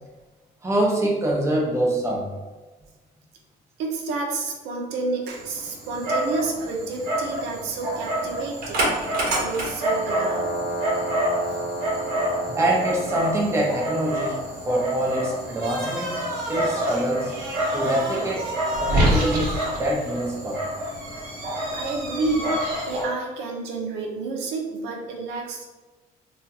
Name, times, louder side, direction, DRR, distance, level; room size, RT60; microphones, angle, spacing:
voice 1, 0.6-2.3 12.5-16.2 16.5-17.4 17.7-18.5 18.8-20.6, right 1 dB, 15° right, -2 dB, 0.7 m, -25 dB
voice 2, 3.8-10.5 21.7-22.6 22.9-25.6, right 3 dB, 85° right, 0 dB, 0.6 m, -30 dB
Dog, 5.3-23.0, right 1 dB, 65° right, 1.0 m, -27 dB
2.8 x 2.3 x 2.8 m, 1.2 s
cardioid pair, 110°, 17 cm